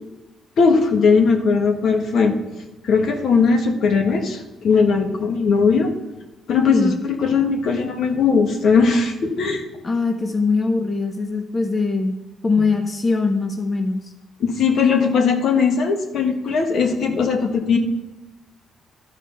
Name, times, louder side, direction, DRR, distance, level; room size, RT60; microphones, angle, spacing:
voice 1, 0.6-2.4 2.8-5.9 6.5-9.6 14.4-17.8, left 5 dB, 65° left, 4 dB, 1.3 m, -18 dB
voice 2, 9.8-12.1 12.4-14.1, left 4 dB, 30° left, 4 dB, 0.8 m, -21 dB
12.0 x 4.9 x 5.6 m, 1.0 s
cardioid pair, 90°, 0 cm